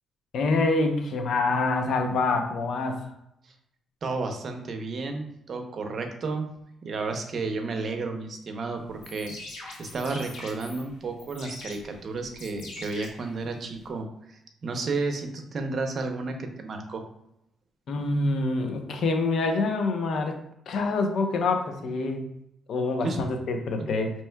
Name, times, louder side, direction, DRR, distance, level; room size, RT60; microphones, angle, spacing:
voice 1, 0.3-3.0 17.9-20.4 20.7-22.3 22.7-24.1, left 3 dB, 65° left, 4 dB, 0.7 m, -26 dB
voice 2, 4.0-6.5 6.8-17.0 23.0-23.2 23.8-23.9, right 3 dB, 50° right, 5 dB, 0.7 m, -32 dB
sound 1, 8.9-13.9, left 2 dB, 85° left, 1.4 m, -44 dB
5.4 x 3.0 x 2.2 m, 0.79 s
cardioid pair, 90°, 0 cm